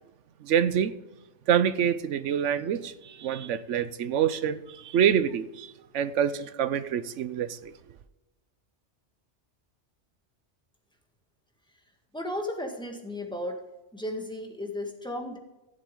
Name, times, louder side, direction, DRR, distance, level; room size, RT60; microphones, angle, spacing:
voice 1, 0.4-0.9 1.5-7.7, right 9 dB, 85° right, 1.0 m, -26 dB
voice 2, 12.1-13.6 13.9-15.4, left 1 dB, 5° left, 1.7 m, -34 dB
15.5 x 7.5 x 3.8 m
omnidirectional pair, 1.2 m